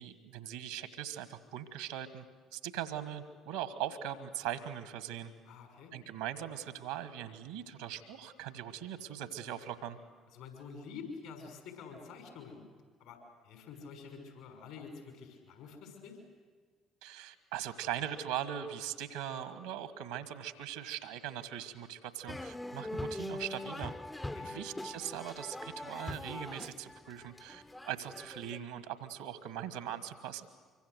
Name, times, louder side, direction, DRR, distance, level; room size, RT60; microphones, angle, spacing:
voice 1, 0.0-2.2 2.5-5.3 5.9-10.0 17.0-23.9 24.4-30.5, right 10 dB, 80° right, 13 dB, 1.5 m, -40 dB
voice 2, 5.5-5.9 10.3-12.6 13.0-13.2 13.4-16.2 24.2-24.5, left 5 dB, 70° left, 3 dB, 5.7 m, -48 dB
sound 1, 22.3-28.6, left 1 dB, 15° left, 0.7 m, -42 dB
24.5 x 24.0 x 8.1 m, 1.5 s
figure-of-eight pair, 50°, 0 cm